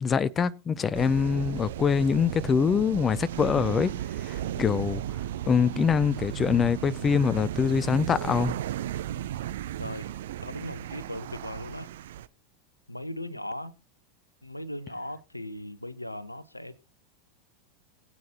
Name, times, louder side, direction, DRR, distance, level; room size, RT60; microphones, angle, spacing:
voice 1, 0.0-3.9 4.2-5.0 5.5-8.5, left 6 dB, 25° left, 0.5 m, -24 dB
sound 1, 0.9-12.3, right 12 dB, 60° right, 0.5 m, -35 dB
voice 2, 9.8-10.1 10.4-11.9 12.9-13.7 14.4-16.8, left 1 dB, 90° left, 0.7 m, -38 dB
21.5 x 8.5 x 2.9 m
figure-of-eight pair, 85°, 0 cm